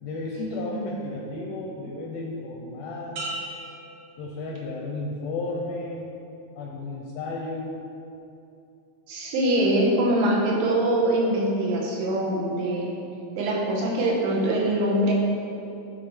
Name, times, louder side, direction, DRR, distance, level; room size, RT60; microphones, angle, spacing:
voice 1, 0.0-3.3 4.2-6.2 6.6-7.7, left 2 dB, 80° left, -2 dB, 1.5 m, -33 dB
sound 1, 3.2-4.9 5.4-5.9, right 1 dB, 70° right, 2.3 m, -38 dB
voice 2, 9.1-12.9 13.3-15.1, right 1 dB, 85° right, -2 dB, 2.4 m, -23 dB
8.9 x 3.6 x 3.4 m, 2.7 s
omnidirectional pair, 3.3 m